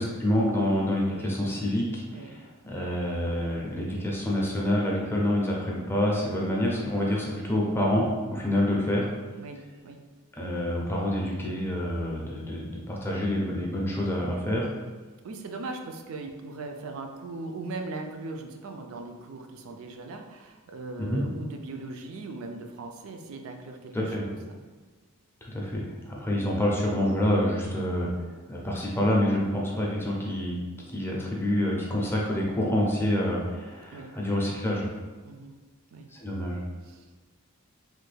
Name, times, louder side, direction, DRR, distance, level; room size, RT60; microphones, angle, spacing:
voice 1, 0.0-8.1 8.3-9.0 10.4-14.7 21.0-21.2 23.9-24.3 25.4-28.1 28.5-30.6 30.9-34.9 36.1-36.6, left 1 dB, 10° left, -3 dB, 0.4 m, -27 dB
voice 2, 9.4-10.0 15.2-24.6 33.9-34.1 35.2-35.5 35.9-36.1 36.8-37.0, right 3 dB, 65° right, 4 dB, 0.3 m, -39 dB
3.2 x 2.2 x 3.2 m, 1.4 s
head